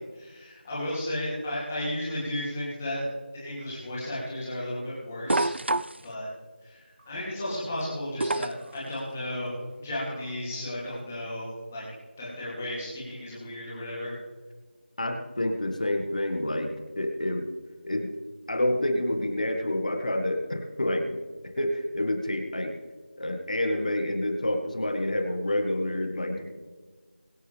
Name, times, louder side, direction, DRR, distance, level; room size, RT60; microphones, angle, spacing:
voice 1, 0.2-3.1 3.3-5.5 6.0-6.3 6.6-6.8 7.1-11.8 12.2-14.1 26.3-26.4, left 1 dB, 10° left, -7 dB, 2.6 m, -34 dB
sound 1, 5.3-6.0 8.2-8.7 10.3-10.4, right 2 dB, 80° right, 0.5 m, -26 dB
voice 2, 15.0-17.5 17.8-18.1 18.5-21.2 21.6-22.7 23.2-26.4, left 1 dB, 45° left, 4 dB, 1.7 m, -28 dB
23.0 x 8.7 x 3.4 m, 1.4 s
figure-of-eight pair, 175°, 6 cm